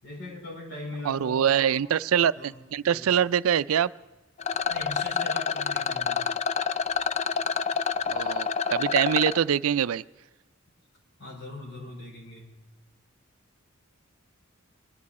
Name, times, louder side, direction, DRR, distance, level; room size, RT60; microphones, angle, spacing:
voice 1, 0.0-1.9 2.3-3.1 4.7-6.3 11.2-12.6, left 1 dB, 55° left, -2 dB, 4.9 m, -41 dB
voice 2, 1.1-3.9 8.1-10.0, right 9 dB, 85° right, 17 dB, 0.4 m, -24 dB
Rattle, 4.4-9.4, left 6 dB, 30° left, 0.4 m, -28 dB
24.0 x 11.0 x 4.2 m, 1.2 s
head